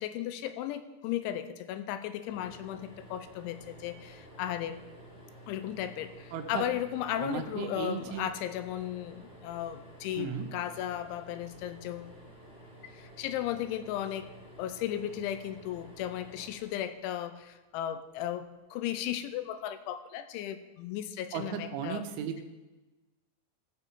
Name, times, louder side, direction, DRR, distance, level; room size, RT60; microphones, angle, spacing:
voice 1, 0.0-4.8 5.5-12.1 12.9-14.3 14.6-22.0, left 11 dB, 85° left, 10 dB, 3.1 m, -35 dB
sound 1, 2.2-17.5 19.2-19.4 19.7-19.8, right 1 dB, 15° left, 2.0 m, -52 dB
voice 2, 6.3-6.7 7.2-8.3 10.2-10.5 21.3-22.4, right 8 dB, 90° right, 5 dB, 3.5 m, -36 dB
15.0 x 5.8 x 6.9 m, 1.1 s
omnidirectional pair, 5.4 m